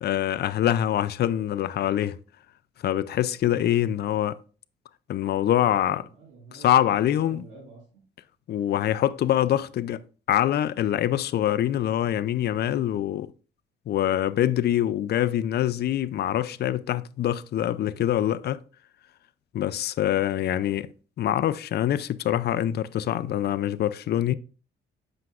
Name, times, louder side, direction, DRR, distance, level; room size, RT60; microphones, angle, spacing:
voice 1, 0.0-2.2 2.8-4.4 5.1-6.1 6.5-7.4 8.5-10.0 10.3-13.3 13.9-18.6 19.5-20.9 21.2-24.3, left 11 dB, 55° left, 0.4 m, -24 dB
voice 2, 5.8-8.0, right 3 dB, 80° right, 2.3 m, -48 dB
7.8 x 5.9 x 2.4 m
cardioid pair, 90°, 20 cm